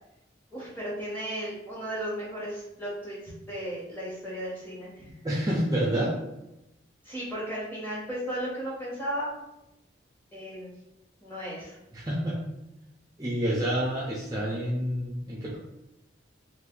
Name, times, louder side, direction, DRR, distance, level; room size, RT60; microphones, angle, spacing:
voice 1, 0.5-5.1 7.0-9.3 10.3-10.7 11.2-11.8, equal, 10° left, -7 dB, 1.2 m, -35 dB
voice 2, 5.2-6.1 11.9-12.4 13.2-15.6, right 1 dB, 20° right, -5 dB, 0.5 m, -28 dB
2.6 x 2.6 x 3.7 m, 0.91 s
head